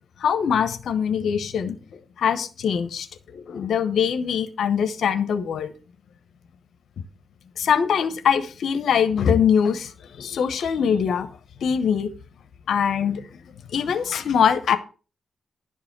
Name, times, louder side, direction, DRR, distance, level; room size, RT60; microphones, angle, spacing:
voice 1, 0.2-1.8 2.2-3.1 3.3-5.7 7.6-11.3 11.6-12.1 12.7-13.2 13.7-14.8, left 7 dB, 85° left, 10 dB, 0.8 m, -22 dB
11.0 x 4.8 x 6.0 m, 0.35 s
cardioid pair, 75°, 0 cm